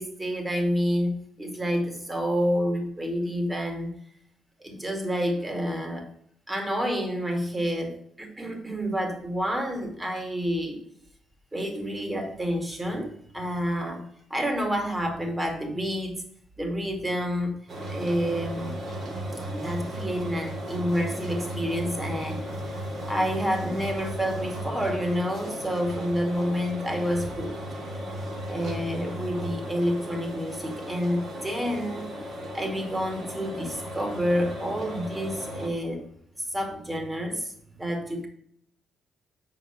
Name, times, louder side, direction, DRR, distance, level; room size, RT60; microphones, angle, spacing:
voice 1, 0.0-3.9 4.6-6.1 6.5-10.8 11.5-16.2 16.6-17.5 17.9-18.8 19.4-27.6 28.5-32.1 32.5-36.0 36.4-37.5 37.8-38.3, equal, 15° right, 4 dB, 2.1 m, -29 dB
sound 1, 17.7-35.7, equal, 60° right, 3.0 m, -35 dB
6.8 x 5.0 x 6.5 m, 0.69 s
cardioid pair, 90°, 0 cm